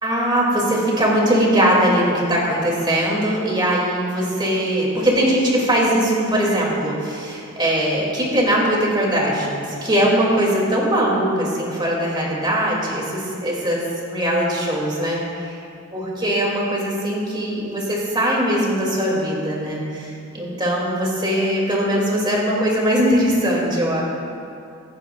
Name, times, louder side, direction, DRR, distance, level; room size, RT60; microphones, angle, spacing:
voice 1, 0.0-15.6 15.9-24.0, equal, 20° right, -4 dB, 2.8 m, -20 dB
23.5 x 9.9 x 2.6 m, 2.5 s
head